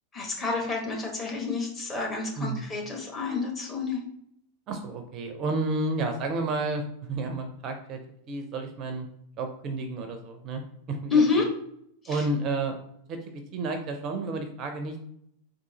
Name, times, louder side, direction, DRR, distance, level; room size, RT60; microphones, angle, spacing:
voice 1, 0.1-4.0 11.1-11.4 12.0-12.2, left 4 dB, 20° left, -1 dB, 1.2 m, -28 dB
voice 2, 2.4-2.7 4.7-8.0 8.3-9.1 9.4-10.6 10.9-11.2 12.1-12.8 13.1-15.0, right 2 dB, 35° right, 6 dB, 0.5 m, -31 dB
3.6 x 2.6 x 4.0 m, 0.72 s
figure-of-eight pair, 90°, 0 cm